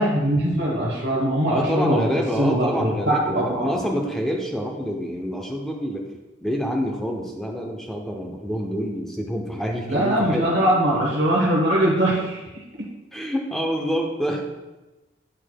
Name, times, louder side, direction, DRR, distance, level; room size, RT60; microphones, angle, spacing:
voice 1, 0.0-2.1 2.4-3.7 9.9-12.9, right 1 dB, 60° right, -2 dB, 1.1 m, -22 dB
voice 2, 1.5-6.1 6.4-10.6 13.1-14.4, equal, ahead, 1 dB, 0.6 m, -27 dB
9.9 x 4.6 x 2.2 m, 1.1 s
head